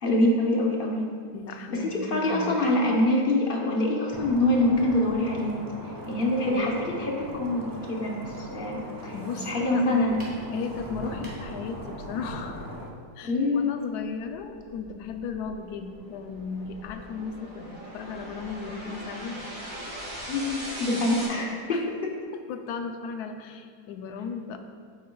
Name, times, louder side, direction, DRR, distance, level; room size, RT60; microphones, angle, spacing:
voice 1, 0.0-1.0 1.7-5.6 5.8-10.2 13.2-13.7 20.3-21.9, left 1 dB, 40° left, -1 dB, 0.9 m, -25 dB
voice 2, 1.3-2.6 6.5-6.8 9.1-10.2 10.5-12.7 13.2-19.4 20.9-21.8 22.5-24.6, left 5 dB, 80° left, 6 dB, 1.1 m, -36 dB
sound 1, 4.1-12.9, equal, 35° right, 0.3 m, -39 dB
sound 2, 10.2-10.4 11.0-11.5, equal, 5° right, 1.7 m, -40 dB
sound 3, 14.3-21.2, right 1 dB, 60° right, 2.2 m, -40 dB
8.4 x 8.3 x 2.3 m, 2.1 s
omnidirectional pair, 1.7 m